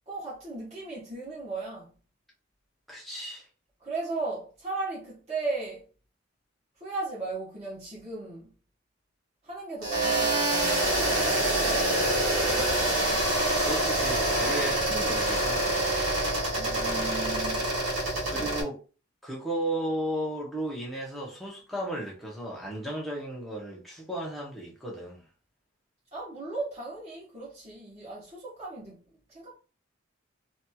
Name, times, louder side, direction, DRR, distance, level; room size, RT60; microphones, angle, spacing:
voice 1, 0.1-1.9 3.8-5.8 6.8-8.5 9.4-13.2 16.5-17.7 18.3-18.5 26.1-29.6, right 3 dB, 30° right, 1.1 m, -37 dB
voice 2, 2.9-3.5 13.6-15.7 18.3-18.8 19.2-25.2, right 1 dB, ahead, 0.8 m, -34 dB
sound 1, 9.8-18.6, right 1 dB, 90° right, 1.5 m, -26 dB
2.9 x 2.8 x 2.3 m
head